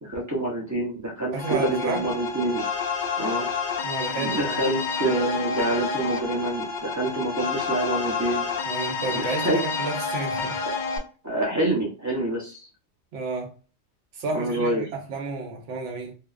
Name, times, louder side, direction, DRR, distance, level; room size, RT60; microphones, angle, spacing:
voice 1, 0.0-2.6 3.2-3.5 4.2-8.5 9.1-9.6 10.6-10.7 11.2-12.7 14.3-14.8, right 1 dB, 25° right, 0.4 m, -27 dB
voice 2, 1.3-2.1 3.8-4.6 5.1-5.3 8.6-10.6 13.1-13.5 14.1-16.1, right 3 dB, 75° right, 1.0 m, -31 dB
sound 1, 1.4-11.0, left 5 dB, 65° left, 0.5 m, -29 dB
2.7 x 2.1 x 2.4 m
omnidirectional pair, 1.3 m